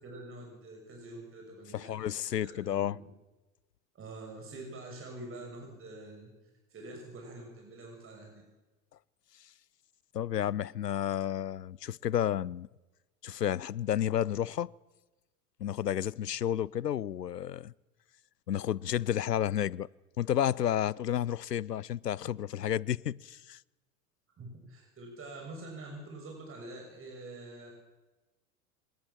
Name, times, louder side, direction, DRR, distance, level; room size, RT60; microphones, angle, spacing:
voice 1, 0.0-2.1 2.4-3.1 3.9-6.3 6.7-8.4 24.4-27.7, right 2 dB, 25° right, 6.8 m, -46 dB
voice 2, 1.7-3.0 10.1-12.7 13.2-14.7 15.6-17.7 18.5-19.9 20.2-23.6, left 10 dB, 90° left, 0.7 m, -31 dB
24.0 x 20.5 x 7.3 m
hypercardioid pair, 90°, 47 cm